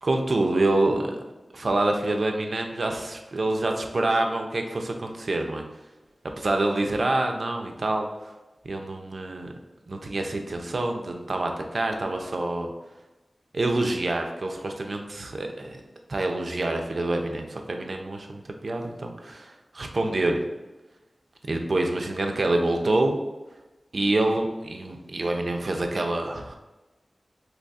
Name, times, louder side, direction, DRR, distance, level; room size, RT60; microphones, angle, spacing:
voice 1, 0.0-1.2 1.5-5.6 6.4-8.1 8.6-9.5 9.9-12.7 13.5-15.8 16.1-20.4 21.5-23.2 23.9-26.6, right 2 dB, 70° right, 3 dB, 0.4 m, -26 dB
2.8 x 2.4 x 4.0 m, 1.1 s
wide cardioid pair, 60°, 0 cm